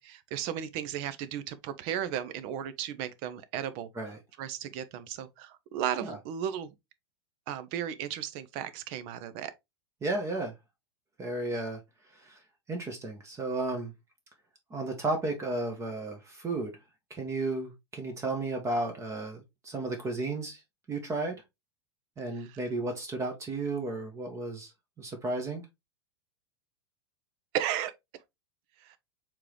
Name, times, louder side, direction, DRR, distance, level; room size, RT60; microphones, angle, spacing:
voice 1, 0.0-3.9 4.4-6.7 7.5-9.5 22.4-22.6 27.5-27.9 28.8-29.0, right 10 dB, 40° right, 0.6 m, -35 dB
voice 2, 10.0-10.5 11.2-11.8 12.1-12.4 12.7-13.9 14.7-16.7 17.1-20.6 20.9-21.3 22.2-24.7 25.0-25.6, right 2 dB, 20° right, 1.1 m, -33 dB
4.7 x 3.7 x 3.0 m
figure-of-eight pair, 90°, 14 cm